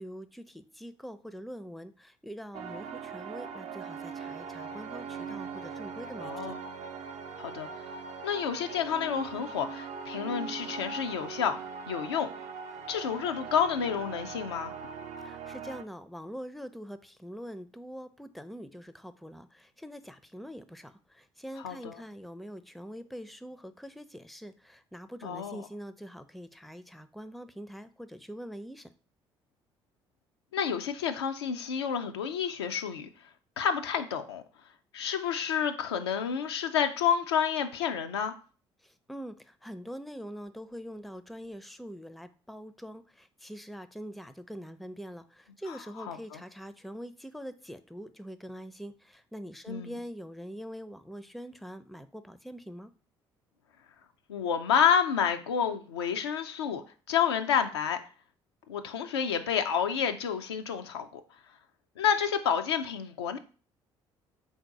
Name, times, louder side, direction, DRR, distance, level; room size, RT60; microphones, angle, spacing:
voice 1, 0.0-6.5 15.2-28.9 38.8-52.9, equal, ahead, 0.4 m, -44 dB
sound 1, 2.5-15.8, right 5 dB, 55° right, 0.5 m, -41 dB
voice 2, 6.2-6.6 7.4-7.9 8.2-12.3 12.9-14.7 21.6-22.0 25.2-25.6 30.5-33.1 33.6-34.4 34.9-38.4 46.1-46.4 49.7-49.9 54.3-58.0 58.7-61.2 62.0-63.4, left 7 dB, 90° left, 0.4 m, -29 dB
3.7 x 2.7 x 4.6 m
hypercardioid pair, 50°, 13 cm